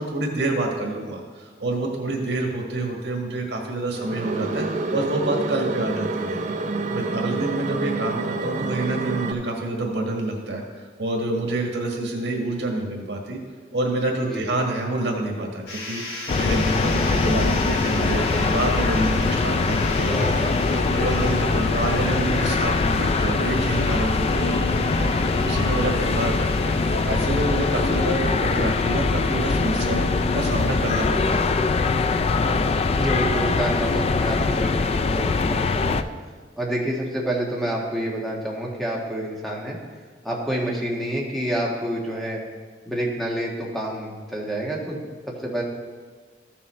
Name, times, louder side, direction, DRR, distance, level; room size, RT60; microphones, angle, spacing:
voice 1, 0.0-6.4 6.9-10.6 11.0-13.4 13.7-20.1 20.7-31.6, right 2 dB, 85° right, 0 dB, 1.7 m, -27 dB
sound 1, 3.9-9.3, right 3 dB, 45° right, 0.5 m, -28 dB
sound 2, 15.7-31.2, left 2 dB, 85° left, 3.1 m, -37 dB
sound 3, 16.3-36.0, left 3 dB, 35° left, 0.3 m, -22 dB
voice 2, 20.1-20.5 33.0-36.0 36.6-39.8 40.2-42.4 42.9-45.1 45.4-45.6, right 1 dB, ahead, -3 dB, 1.4 m, -28 dB
14.0 x 7.0 x 3.2 m, 1.5 s
head